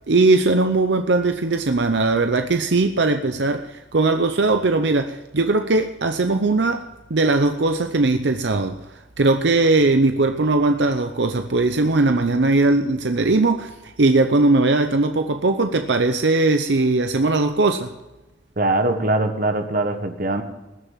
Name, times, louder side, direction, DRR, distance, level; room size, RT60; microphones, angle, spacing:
voice 1, 0.1-8.8 9.2-17.9, right 3 dB, 75° right, 0.8 m, -19 dB
voice 2, 18.6-20.4, right 2 dB, 50° right, 1.5 m, -22 dB
20.5 x 6.8 x 7.4 m
head